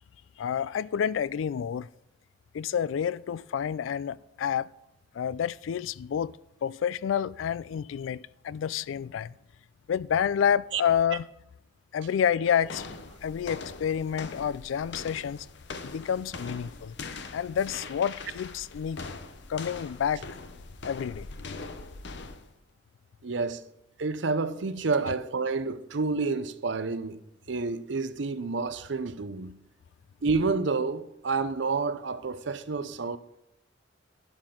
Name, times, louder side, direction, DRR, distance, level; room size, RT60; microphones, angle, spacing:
voice 1, 0.4-1.9 2.5-4.7 5.1-9.3 9.9-11.3 11.9-12.9 13.2-15.5 15.8-16.9 17.3-19.0 19.5-20.2 20.8-21.3, left 8 dB, 80° left, 0.3 m, -29 dB
sound 1, 12.6-22.5, left 3 dB, 65° left, 0.8 m, -42 dB
voice 2, 23.2-23.6 24.0-27.2 27.5-29.6 30.2-33.2, right 4 dB, 70° right, 0.7 m, -29 dB
12.0 x 10.5 x 3.8 m
head